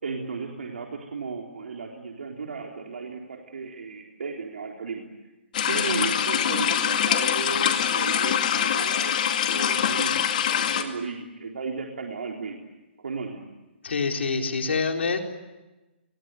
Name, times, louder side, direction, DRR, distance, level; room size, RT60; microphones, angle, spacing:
voice 1, 0.0-5.1 5.7-9.2 9.5-12.6 13.0-13.4, right 4 dB, 80° right, 1 dB, 3.9 m, -34 dB
sound 1, 5.5-10.8, left 9 dB, 40° left, 2.3 m, -24 dB
voice 2, 13.8-15.2, left 4 dB, 80° left, 3 dB, 4.4 m, -26 dB
28.5 x 22.0 x 9.2 m, 1.1 s
hypercardioid pair, 170°, 6 cm